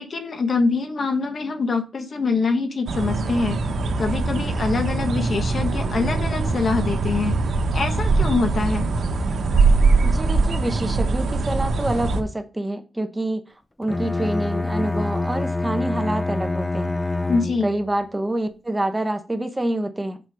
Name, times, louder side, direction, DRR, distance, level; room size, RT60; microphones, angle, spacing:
voice 1, 0.0-3.6 4.0-7.4 7.7-8.9 17.3-17.7, left 4 dB, 50° left, 7 dB, 1.4 m, -24 dB
sound 1, 2.9-12.2, right 3 dB, 75° right, 1.3 m, -22 dB
voice 2, 10.0-13.4 13.8-17.0 17.6-20.2, right 1 dB, 15° right, 7 dB, 1.0 m, -27 dB
Bowed string instrument, 13.8-17.9, left 2 dB, 15° left, 0.4 m, -26 dB
7.1 x 5.5 x 5.0 m, 0.32 s
wide cardioid pair, 100°, 0 cm